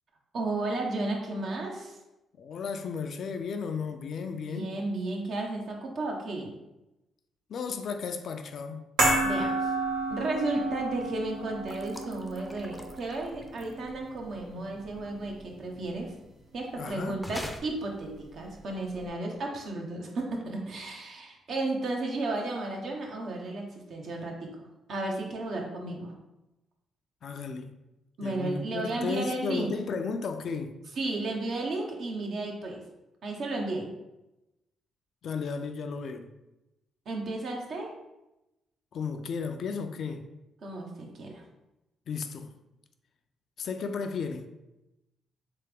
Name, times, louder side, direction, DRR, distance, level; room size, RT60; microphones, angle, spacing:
voice 1, 0.3-2.0 4.3-6.5 9.2-9.7 10.1-16.1 16.5-24.5 24.9-26.1 28.2-29.7 30.9-32.8 33.2-33.9 37.1-37.9 40.6-41.4, right 2 dB, 65° right, 0.9 m, -33 dB
voice 2, 2.4-4.7 7.5-8.9 16.7-17.2 27.2-27.7 28.2-30.7 35.2-36.3 38.9-40.2 42.1-42.5 43.6-44.5, left 5 dB, 65° left, 0.4 m, -34 dB
sound 1, 9.0-15.4 15.7-15.8, right 2 dB, 85° right, 1.3 m, -31 dB
sound 2, 11.7-13.9 17.2-17.6, left 1 dB, 5° left, 0.5 m, -42 dB
3.4 x 3.4 x 3.4 m
cardioid pair, 70°, 0 cm